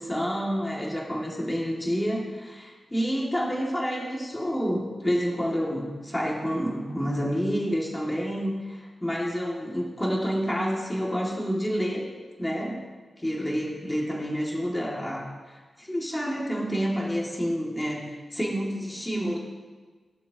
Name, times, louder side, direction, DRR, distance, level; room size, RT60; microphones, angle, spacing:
voice 1, 0.0-12.1 12.4-12.8 13.2-19.4, equal, 10° left, -3 dB, 2.2 m, -29 dB
17.5 x 11.5 x 2.9 m, 1.4 s
wide cardioid pair, 150°, 0 cm